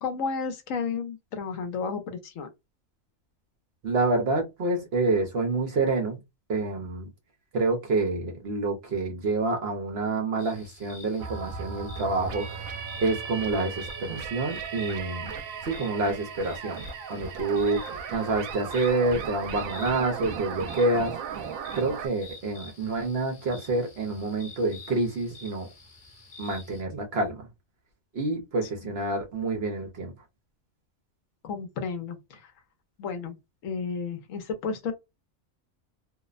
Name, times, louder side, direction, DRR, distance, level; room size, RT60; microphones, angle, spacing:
voice 1, 0.0-2.5 28.8-28.9 31.4-32.5 33.0-33.4 33.6-34.9, left 5 dB, 75° left, 1.0 m, -32 dB
voice 2, 3.8-6.2 6.5-7.1 7.5-15.3 15.6-16.8 17.1-21.1 21.7-25.7 26.4-27.5 28.1-30.1, right 3 dB, 55° right, 0.8 m, -28 dB
sound 1, 10.4-26.8, left 3 dB, 45° left, 0.8 m, -50 dB
sound 2, 11.2-22.1, right 6 dB, 80° right, 1.0 m, -36 dB
2.7 x 2.0 x 2.3 m
omnidirectional pair, 1.4 m